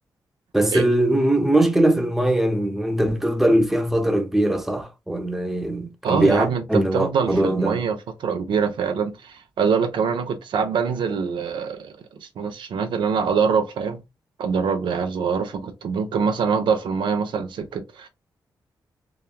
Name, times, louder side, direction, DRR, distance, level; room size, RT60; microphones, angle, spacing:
voice 1, 0.5-7.8, right 1 dB, 5° right, 0.6 m, -21 dB
voice 2, 6.0-14.0 14.4-18.1, right 6 dB, 80° right, 0.6 m, -24 dB
3.0 x 2.2 x 2.2 m
cardioid pair, 60°, 8 cm